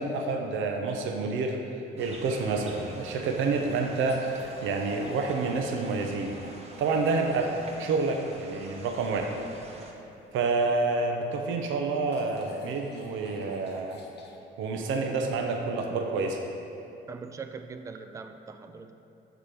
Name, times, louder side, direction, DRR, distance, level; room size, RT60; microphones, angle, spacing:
voice 1, 0.0-1.6 2.0-6.4 6.8-7.5 7.8-9.3 10.3-14.0 14.6-16.4, right 3 dB, 80° right, 3 dB, 0.6 m, -28 dB
sound 1, 2.0-9.9, right 2 dB, 30° right, 0.9 m, -47 dB
sound 2, 2.2-7.8 10.9-11.0 12.1-14.4, left 2 dB, 60° left, 0.9 m, -49 dB
voice 2, 17.1-18.9, right 5 dB, 15° right, 8 dB, 0.3 m, -41 dB
6.6 x 3.4 x 5.8 m, 2.8 s
cardioid pair, 90°, 20 cm